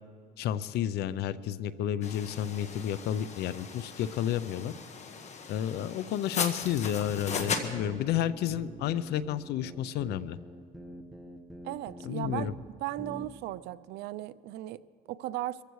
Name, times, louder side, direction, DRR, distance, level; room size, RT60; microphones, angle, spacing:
voice 1, 0.4-4.7 5.5-10.4 12.0-12.5, left 10 dB, 75° left, 17 dB, 0.5 m, -31 dB
sound 1, 2.0-7.7, left 5 dB, 45° left, 1.4 m, -38 dB
sound 2, 6.6-12.7 13.0-13.3, right 1 dB, ahead, 1.2 m, -44 dB
voice 2, 11.6-12.5 12.8-14.8 15.1-15.6, right 15 dB, 85° right, 17 dB, 0.5 m, -36 dB
23.5 x 15.0 x 3.1 m, 2.3 s
cardioid pair, 110°, 17 cm